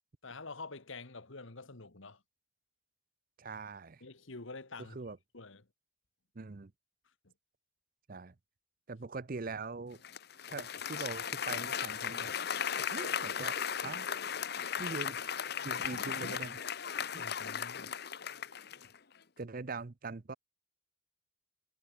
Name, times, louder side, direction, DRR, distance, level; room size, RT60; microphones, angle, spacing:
voice 1, 0.2-2.2 4.0-5.0 5.3-5.7 7.2-7.3 17.2-17.9, left 3 dB, 65° left, 1.7 m, -47 dB
voice 2, 3.4-4.0 4.8-5.2 6.3-6.7 8.1-8.3 8.9-10.0 10.5-12.4 12.8-14.1 14.8-16.6 17.1-17.3 17.9-18.0 19.4-20.3, right 3 dB, 40° right, 0.6 m, -43 dB
Applause, 10.0-19.0, left 8 dB, 50° left, 1.0 m, -36 dB
head